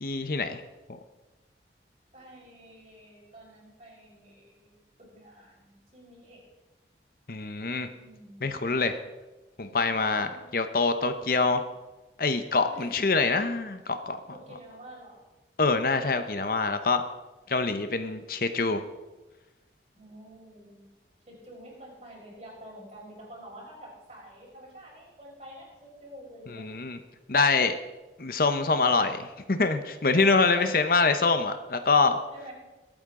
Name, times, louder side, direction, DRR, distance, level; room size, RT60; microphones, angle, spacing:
voice 1, 0.0-0.6 0.9-1.0 7.3-7.9 8.4-9.0 9.6-11.6 12.2-14.2 15.6-17.0 17.5-18.8 26.5-27.0 27.3-27.8 28.2-32.2, left 4 dB, 55° left, 9 dB, 0.8 m, -25 dB
voice 2, 2.1-6.4 7.9-8.7 10.3-10.7 12.7-12.9 14.3-15.2 19.9-20.9 21.3-26.6 30.5-30.7 32.3-32.5, right 1 dB, 40° right, -4 dB, 5.7 m, -48 dB
22.5 x 8.8 x 3.8 m, 1.1 s
head